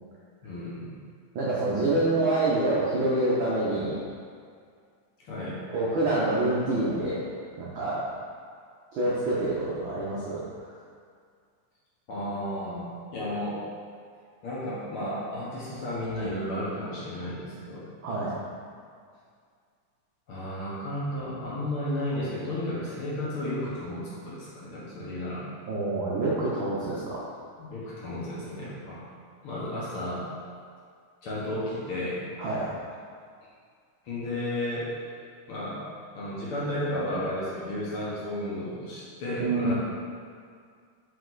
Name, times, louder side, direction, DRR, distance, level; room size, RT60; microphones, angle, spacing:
voice 1, 0.4-1.0 5.2-5.6 12.1-12.9 13.1-13.6 14.4-17.9 20.3-25.4 27.6-29.0 29.4-30.3 31.2-32.2 34.0-35.8 36.1-39.7, left 1 dB, 60° left, -7 dB, 1.6 m, -33 dB
voice 2, 1.3-4.0 5.7-7.2 7.6-8.1 8.9-10.4 18.0-18.4 25.7-27.2 32.4-32.7 39.4-39.7, right 2 dB, 90° right, -7 dB, 1.0 m, -26 dB
5.4 x 5.2 x 3.9 m, 2.2 s
omnidirectional pair, 3.4 m